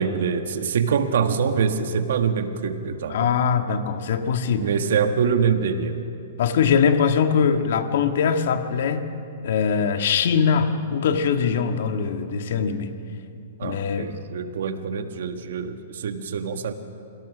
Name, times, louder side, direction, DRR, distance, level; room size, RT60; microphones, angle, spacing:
voice 1, 0.0-3.3 4.6-6.0 13.6-16.7, right 6 dB, 70° right, 7 dB, 1.6 m, -24 dB
voice 2, 3.1-4.7 6.4-9.1 9.4-12.9 13.6-14.1, left 6 dB, 65° left, 6 dB, 1.8 m, -22 dB
27.0 x 18.0 x 6.3 m, 2.6 s
hypercardioid pair, 140°, 0 cm